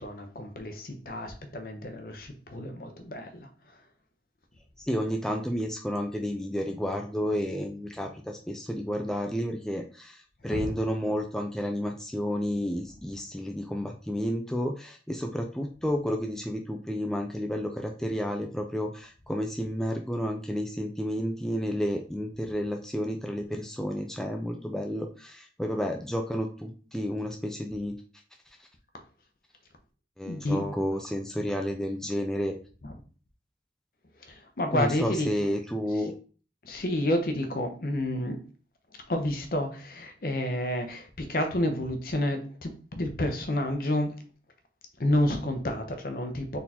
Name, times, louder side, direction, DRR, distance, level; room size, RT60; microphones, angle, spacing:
voice 1, 0.0-3.8 10.4-10.8 30.2-30.7 32.8-33.0 34.2-35.3 36.6-38.5 39.1-44.2 45.0-46.6, left 1 dB, 55° left, 0.7 m, -30 dB
voice 2, 4.8-28.0 30.2-32.6 34.7-36.1, equal, 5° left, 0.3 m, -31 dB
4.1 x 3.7 x 2.8 m
head